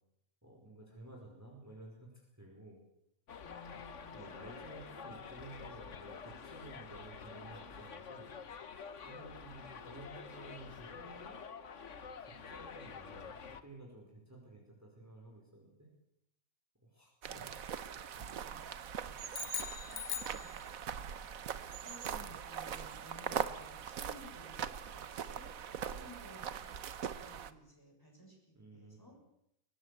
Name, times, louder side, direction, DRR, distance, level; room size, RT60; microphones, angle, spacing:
voice 1, 0.4-2.8 3.7-3.8 4.1-8.3 9.0-11.4 12.2-15.9 16.8-17.8 18.1-18.4 28.5-29.0, right 2 dB, 10° right, -1 dB, 4.9 m, -53 dB
Subway metro underground, 3.3-13.6, left 6 dB, 60° left, 1.6 m, -48 dB
voice 2, 3.4-4.7 9.1-9.5 18.5-19.1 19.8-21.1 21.8-25.4 25.9-26.7 27.0-29.2, left 1 dB, 15° left, 0 dB, 6.9 m, -57 dB
sound 1, 17.2-27.5, right 8 dB, 90° right, 1.5 m, -41 dB
sound 2, 19.3-21.1, left 9 dB, 85° left, 1.5 m, -41 dB
22.0 x 19.0 x 8.3 m, 0.78 s
omnidirectional pair, 1.4 m